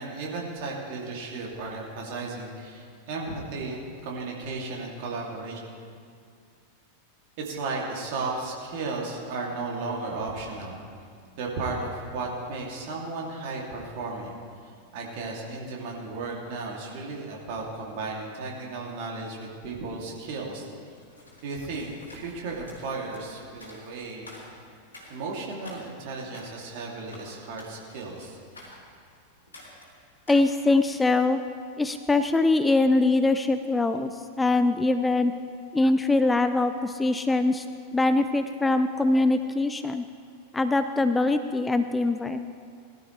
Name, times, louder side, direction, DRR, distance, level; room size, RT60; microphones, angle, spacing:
voice 1, 0.0-5.6 7.4-10.8 11.4-14.3 14.6-20.7 21.4-24.3 25.1-28.4, right 3 dB, 50° right, -2 dB, 2.7 m, -34 dB
sound 1, 20.8-31.1, left 1 dB, 75° left, 3.5 m, -50 dB
voice 2, 30.3-31.4 31.8-34.1 34.4-35.3 35.7-37.7 37.9-40.0 40.5-42.4, left 2 dB, 10° left, 9 dB, 0.4 m, -23 dB
20.0 x 12.5 x 3.3 m, 2.2 s
figure-of-eight pair, 90°, 0 cm